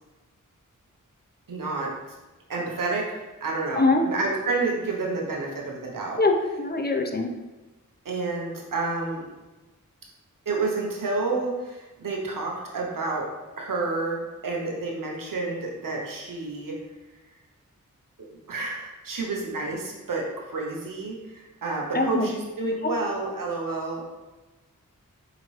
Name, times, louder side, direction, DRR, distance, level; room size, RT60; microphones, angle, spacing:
voice 1, 1.5-1.9 2.5-6.2 8.0-9.2 10.5-13.3 13.6-16.8 18.5-24.0, right 3 dB, 90° right, -1 dB, 0.8 m, -29 dB
voice 2, 6.2-7.3 21.9-22.3 22.8-22.9, left 3 dB, 30° left, 3 dB, 0.5 m, -23 dB
4.6 x 2.9 x 3.1 m, 1.1 s
wide cardioid pair, 50°, 32 cm